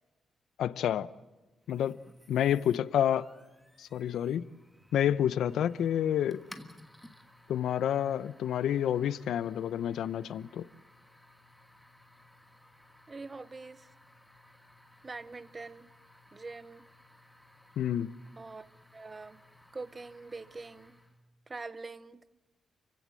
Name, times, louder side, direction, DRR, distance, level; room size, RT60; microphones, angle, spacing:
voice 1, 0.6-1.1 1.7-2.0 2.3-3.3 3.8-4.4 4.9-6.4 7.5-10.7 17.8-18.1, left 10 dB, 85° left, 0.7 m, -29 dB
sound 1, 1.7-21.3, left 1 dB, ahead, 1.4 m, -58 dB
voice 2, 13.1-13.9 15.0-15.9 16.3-16.9 18.4-19.4 19.7-21.0 21.5-22.2, right 3 dB, 20° right, 0.7 m, -44 dB
29.5 x 16.0 x 7.6 m
wide cardioid pair, 165°, 0 cm